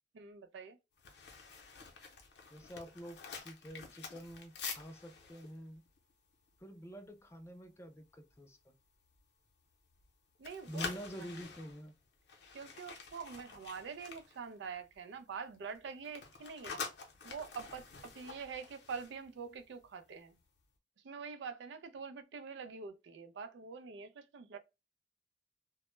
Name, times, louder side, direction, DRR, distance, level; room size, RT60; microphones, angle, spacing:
voice 1, 0.1-0.8 10.4-10.8 11.2-11.3 12.5-16.8 17.2-20.4 21.0-24.6, right 5 dB, 75° right, 0.4 m, -45 dB
sound 1, 1.0-7.1 7.4-7.6 8.0-8.4 8.8-10.1 10.3-15.1 15.4-19.9 20.2-20.4, left 5 dB, 65° left, 0.6 m, -48 dB
voice 2, 2.5-5.8 6.6-8.7 10.7-11.9, equal, 15° left, 0.3 m, -47 dB
2.1 x 2.0 x 3.0 m
head